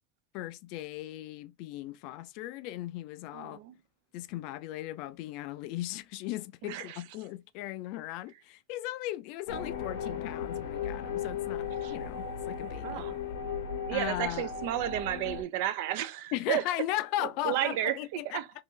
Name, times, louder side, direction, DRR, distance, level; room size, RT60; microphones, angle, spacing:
voice 1, 0.3-3.6 4.1-13.1 13.9-14.5 16.3-18.4, left 14 dB, 55° left, 0.3 m, -37 dB
voice 2, 3.3-3.8 6.6-7.0 11.8-11.9 12.8-13.2 13.9-16.6 17.2-18.5, right 13 dB, 65° right, 0.4 m, -33 dB
sound 1, 9.5-15.4, left 7 dB, 80° left, 0.7 m, -36 dB
2.8 x 2.6 x 3.6 m
supercardioid pair, 150°, 0 cm